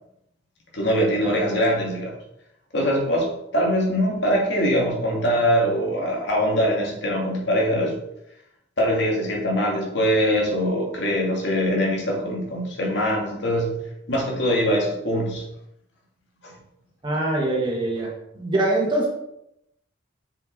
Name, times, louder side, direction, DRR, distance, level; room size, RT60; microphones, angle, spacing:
voice 1, 0.7-2.1 2.7-7.9 8.8-13.8 14.1-15.4 16.4-16.5, equal, 65° left, -2 dB, 2.3 m, -22 dB
voice 2, 17.0-18.1 18.4-19.1, right 2 dB, 25° right, -2 dB, 1.9 m, -23 dB
7.0 x 6.8 x 4.1 m, 0.82 s
head